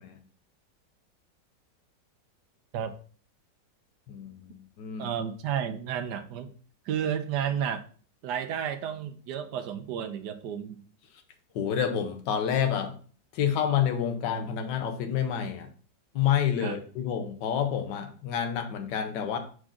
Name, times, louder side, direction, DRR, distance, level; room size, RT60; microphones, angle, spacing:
voice 1, 4.1-5.1 11.5-12.9 13.3-15.7 16.1-19.4, left 8 dB, 75° left, 5 dB, 1.5 m, -28 dB
voice 2, 5.0-6.5 6.9-7.8 8.2-10.8 16.6-16.8, right 8 dB, 70° right, 9 dB, 1.2 m, -32 dB
6.1 x 4.9 x 3.7 m, 0.42 s
omnidirectional pair, 2.0 m